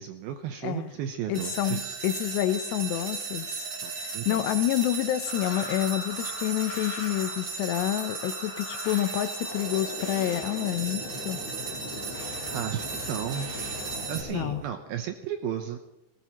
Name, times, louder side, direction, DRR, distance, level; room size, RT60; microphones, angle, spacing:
voice 1, 0.0-2.0 3.8-4.4 12.5-13.5 14.1-15.8, right 9 dB, 80° right, 6 dB, 2.3 m, -34 dB
voice 2, 1.3-3.7 3.9-11.4 14.3-14.6, left 13 dB, 80° left, 11 dB, 2.7 m, -28 dB
sound 1, 1.3-14.2, right 5 dB, 35° right, 3.0 m, -36 dB
sound 2, 5.3-14.6, left 3 dB, 45° left, 4.6 m, -40 dB
18.0 x 17.5 x 3.0 m, 0.91 s
omnidirectional pair, 5.1 m